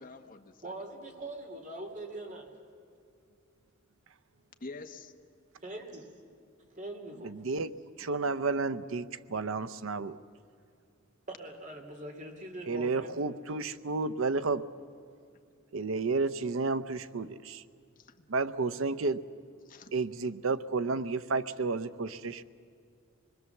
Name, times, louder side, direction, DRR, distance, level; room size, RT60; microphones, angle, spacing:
voice 1, 0.0-0.7 4.6-5.1 18.0-18.2 19.7-19.9, left 3 dB, 45° left, 6 dB, 1.2 m, -46 dB
voice 2, 0.6-2.5 5.6-6.1 6.7-7.4 11.3-13.1, right 2 dB, 40° right, 3 dB, 2.9 m, -42 dB
voice 3, 7.2-7.7 8.0-10.2 12.7-14.7 15.7-17.6 18.3-19.2 19.9-22.4, right 3 dB, 75° right, 14 dB, 0.7 m, -31 dB
26.0 x 21.5 x 7.2 m, 2.3 s
head